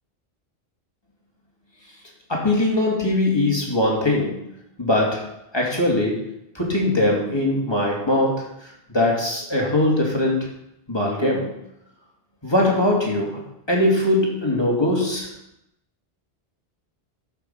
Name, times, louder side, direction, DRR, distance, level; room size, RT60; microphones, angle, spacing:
voice 1, 2.3-4.4 4.8-5.2 5.5-6.2 6.5-10.5 10.9-11.5 12.4-13.4 13.7-15.3, left 1 dB, 25° left, -2 dB, 2.6 m, -21 dB
13.0 x 5.8 x 5.8 m, 0.82 s
omnidirectional pair, 1.1 m